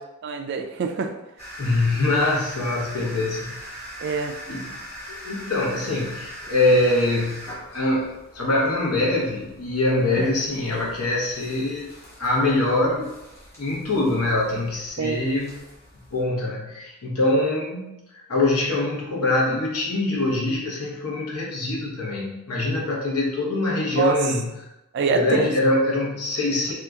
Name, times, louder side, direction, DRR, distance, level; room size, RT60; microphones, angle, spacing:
voice 1, 0.2-1.1 4.0-4.3 15.0-15.2 24.0-24.1 24.9-25.5, right 5 dB, 50° right, 5 dB, 0.3 m, -24 dB
sound 1, 1.4-16.2, equal, 10° left, 1.1 m, -41 dB
voice 2, 1.6-3.6 4.5-4.8 5.1-13.1 13.6-15.6 16.1-17.9 18.3-24.7 25.1-26.7, left 2 dB, 80° left, -4 dB, 1.0 m, -24 dB
2.8 x 2.4 x 3.5 m, 0.95 s
head